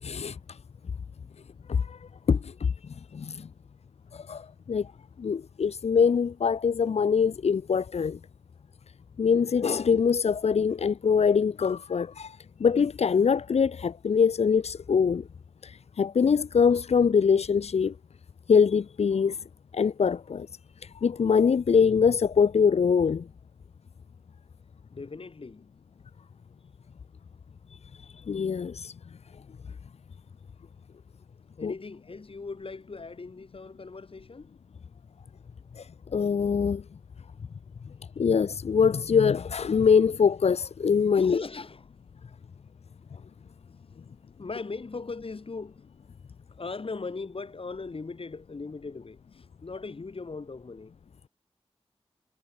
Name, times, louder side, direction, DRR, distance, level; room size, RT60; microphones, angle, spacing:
voice 1, 0.0-0.6 1.7-2.0 2.3-2.7 3.1-3.5 4.1-4.9 5.2-8.2 9.2-15.3 15.6-17.9 18.5-19.4 19.7-20.5 20.8-23.3 28.2-28.9 31.6-31.7 35.8-36.8 38.2-41.4, left 6 dB, 85° left, 1.4 m, -23 dB
voice 2, 24.9-25.8 31.6-34.5 41.1-42.0 42.8-45.9 46.5-50.9, left 4 dB, 60° left, 7.6 m, -39 dB
cardioid pair, 45°, 11 cm